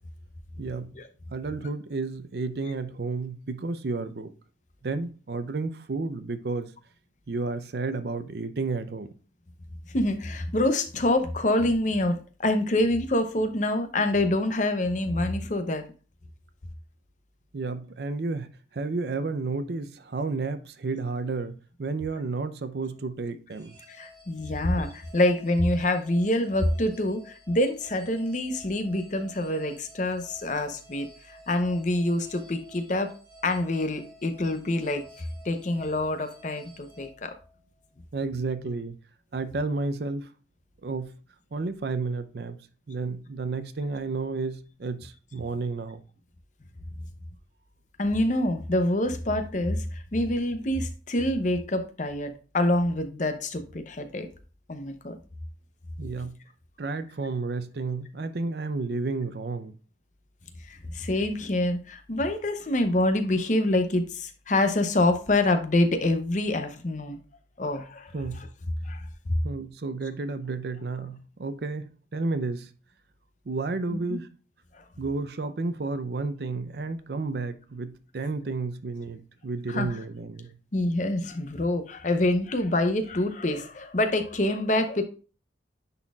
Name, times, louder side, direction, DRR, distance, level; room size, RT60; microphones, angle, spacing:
voice 1, 0.6-0.9 1.3-4.3 4.8-6.7 7.3-9.1 17.5-23.7 38.1-39.0 39.3-40.3 40.8-41.1 41.5-42.6 42.9-46.0 56.0-56.4 56.8-59.7 68.1-68.4 69.4-72.7 73.5-74.3 75.0-80.6, right 3 dB, 60° right, 0.5 m, -31 dB
voice 2, 9.9-15.8 23.9-33.1 33.4-35.0 35.4-37.3 48.0-54.3 54.7-55.2 60.7-67.2 67.6-68.1 68.9-69.0 73.9-74.2 74.7-74.8 79.7-80.0 80.7-85.0, left 1 dB, 40° left, 0.7 m, -26 dB
sound 1, 23.5-37.9, right 1 dB, 15° right, 1.7 m, -52 dB
9.6 x 4.2 x 2.3 m
head